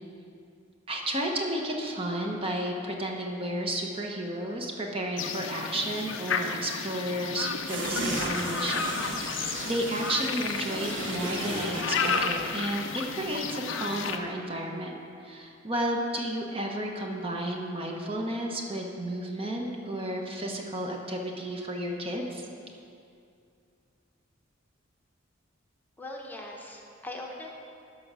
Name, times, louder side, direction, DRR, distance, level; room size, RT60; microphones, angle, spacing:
voice 1, 0.9-22.4, right 1 dB, 30° right, 1 dB, 0.9 m, -32 dB
sound 1, 5.2-14.2, left 5 dB, 70° left, 0.6 m, -33 dB
sound 2, 7.7-12.4 12.8-12.9, right 2 dB, 70° right, 1.1 m, -36 dB
sound 3, 7.8-8.7 8.9-9.0 10.7-12.0, equal, 45° right, 2.5 m, -37 dB
voice 2, 26.0-27.5, left 1 dB, 10° left, -1 dB, 0.9 m, -40 dB
12.0 x 5.5 x 6.1 m, 2.5 s
head